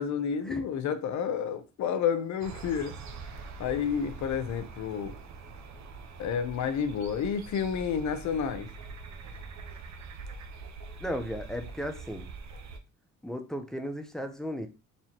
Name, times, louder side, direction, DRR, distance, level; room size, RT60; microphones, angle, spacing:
voice 1, 0.0-2.9 3.6-5.1 6.2-8.7, left 7 dB, 70° left, 0.7 m, -30 dB
sound 1, 2.4-12.8, right 4 dB, 65° right, 0.7 m, -44 dB
voice 2, 11.0-12.3 13.2-14.7, equal, ahead, 0.7 m, -35 dB
4.3 x 3.0 x 2.9 m
cardioid pair, 90°, 30 cm